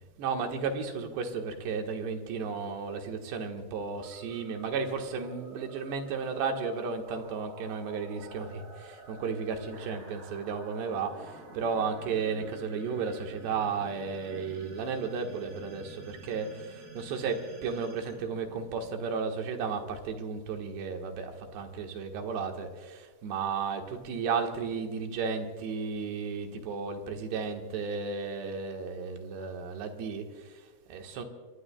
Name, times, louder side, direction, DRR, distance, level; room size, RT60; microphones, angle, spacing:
voice 1, 0.0-31.3, right 5 dB, 80° right, 3 dB, 3.6 m, -34 dB
sound 1, 4.0-19.1, right 2 dB, 50° right, 4.8 m, -50 dB
25.5 x 23.5 x 2.3 m, 1.5 s
omnidirectional pair, 4.9 m